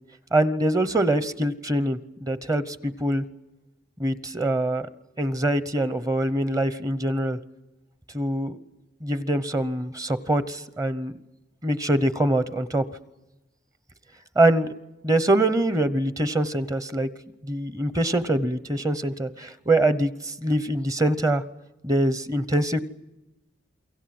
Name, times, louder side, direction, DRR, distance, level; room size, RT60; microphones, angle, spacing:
voice 1, 0.3-3.2 4.0-4.9 5.2-7.4 8.1-8.6 9.0-11.1 11.6-12.9 14.4-14.7 15.0-17.1 17.4-21.4 21.8-22.8, right 1 dB, 20° right, 14 dB, 0.9 m, -24 dB
28.5 x 23.5 x 7.8 m, 0.98 s
head